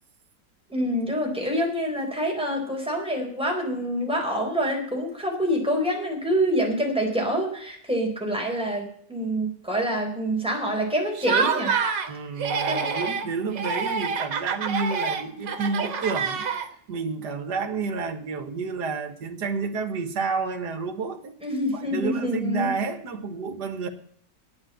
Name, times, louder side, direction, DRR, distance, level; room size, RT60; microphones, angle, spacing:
voice 1, 0.7-11.7 12.7-12.8 21.4-22.7, equal, 5° right, 4.0 m, -26 dB
Laughter, 11.2-12.1 12.4-13.3 13.6-16.9, right 5 dB, 85° right, 1.8 m, -27 dB
voice 2, 12.1-16.5 16.9-21.3 21.7-23.9, right 4 dB, 70° right, 2.1 m, -30 dB
9.7 x 9.6 x 9.1 m
omnidirectional pair, 1.9 m